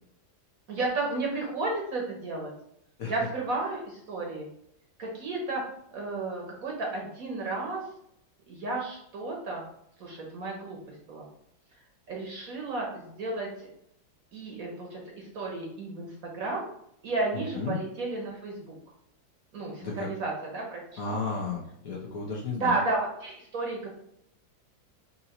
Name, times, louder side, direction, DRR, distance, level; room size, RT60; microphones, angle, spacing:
voice 1, 0.7-2.5 3.0-4.5 5.0-5.6 5.9-7.8 8.5-9.6 10.0-11.3 12.1-13.7 14.3-16.6 17.0-18.8 19.5-21.2 22.6-23.9, right 3 dB, 55° right, -1 dB, 1.1 m, -33 dB
voice 2, 21.0-22.8, left 4 dB, 60° left, -3 dB, 1.0 m, -33 dB
5.5 x 2.7 x 2.9 m, 0.74 s
omnidirectional pair, 2.1 m